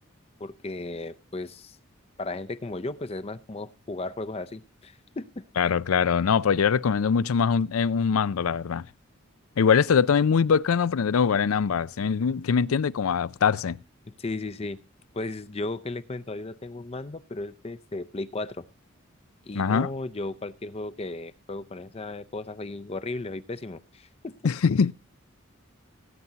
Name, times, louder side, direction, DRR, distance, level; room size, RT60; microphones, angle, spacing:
voice 1, 0.4-1.8 2.2-5.4 14.2-14.8 15.1-18.7 19.5-24.3, left 2 dB, 30° left, 0.5 m, -35 dB
voice 2, 5.6-8.9 9.6-13.8 19.5-19.9 24.4-24.9, left 6 dB, 90° left, 0.5 m, -23 dB
19.0 x 9.3 x 2.8 m
head